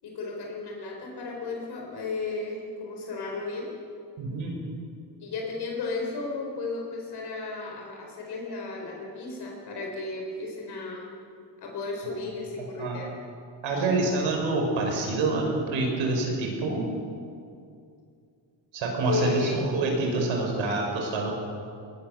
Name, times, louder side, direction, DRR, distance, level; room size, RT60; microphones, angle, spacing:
voice 1, 0.0-3.7 5.2-11.1 11.6-13.1 19.1-19.7, left 3 dB, 55° left, 0 dB, 4.3 m, -34 dB
voice 2, 4.2-4.5 12.0-12.1 12.8-13.0 13.6-16.9 18.7-21.3, right 3 dB, 80° right, 1 dB, 6.0 m, -27 dB
21.0 x 20.5 x 6.9 m, 2.4 s
cardioid pair, 140°, 46 cm